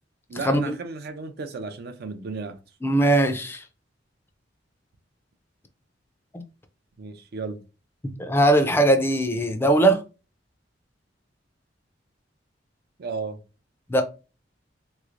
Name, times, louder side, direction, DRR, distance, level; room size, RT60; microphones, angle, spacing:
voice 1, 0.3-2.6 7.0-7.6 13.0-13.4, right 4 dB, 55° right, 0.4 m, -34 dB
voice 2, 2.8-3.6 6.3-6.4 8.0-10.0 13.9-14.0, right 1 dB, 10° left, 0.4 m, -20 dB
3.2 x 3.2 x 2.5 m
head